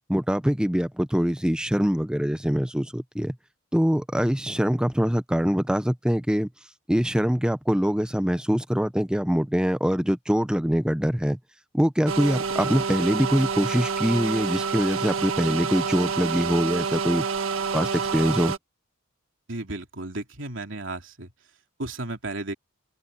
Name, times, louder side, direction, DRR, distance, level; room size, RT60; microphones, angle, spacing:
voice 1, 0.1-3.4 3.7-6.5 6.9-11.4 11.7-17.3 17.7-18.5, equal, 5° right, 0.6 m, -24 dB
sound 1, 12.1-18.6, right 5 dB, 75° right, 1.6 m, -28 dB
voice 2, 19.5-21.3 21.8-22.5, right 2 dB, 60° right, 3.3 m, -34 dB
head